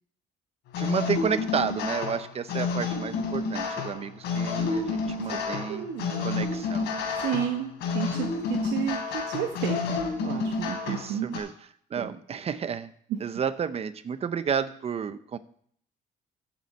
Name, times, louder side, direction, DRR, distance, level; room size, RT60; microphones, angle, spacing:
sound 1, 0.7-11.4, left 4 dB, 80° left, 3.8 m, -30 dB
voice 1, 0.8-5.9 6.2-6.9 10.8-12.9 13.2-15.4, right 7 dB, 35° right, 13 dB, 0.8 m, -31 dB
voice 2, 5.7-6.4 7.2-11.4 12.0-12.1, right 9 dB, 90° right, 4 dB, 1.1 m, -32 dB
14.5 x 7.8 x 4.3 m, 0.63 s
cardioid pair, 110°, 17 cm